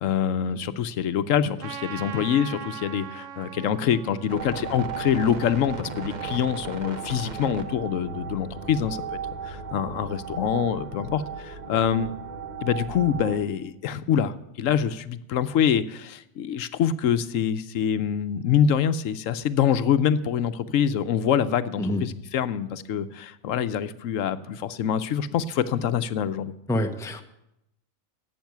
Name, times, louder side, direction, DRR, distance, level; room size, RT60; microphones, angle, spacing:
voice 1, 0.0-9.2 9.4-12.1 12.6-26.5, left 8 dB, 80° left, 13 dB, 1.0 m, -25 dB
Trumpet, 1.6-6.3, right 7 dB, 50° right, 0.8 m, -41 dB
sound 1, 4.3-13.4, right 6 dB, 35° right, 1.1 m, -35 dB
voice 2, 26.7-27.2, left 1 dB, 5° left, 6 dB, 0.7 m, -26 dB
12.0 x 8.2 x 9.3 m, 0.84 s
omnidirectional pair, 1.3 m